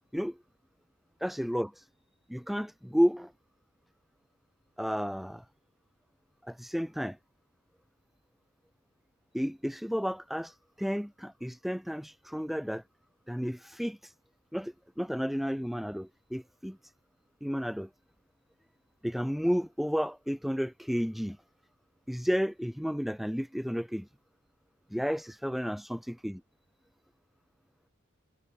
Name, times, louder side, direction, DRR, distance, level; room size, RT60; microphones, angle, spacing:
voice 1, 1.2-1.9 2.3-3.3 4.8-5.4 6.4-7.2 9.3-12.8 13.3-14.1 14.5-16.8 17.4-17.9 19.0-21.4 22.1-24.1 24.9-26.4, equal, ahead, 4.6 m, -32 dB
head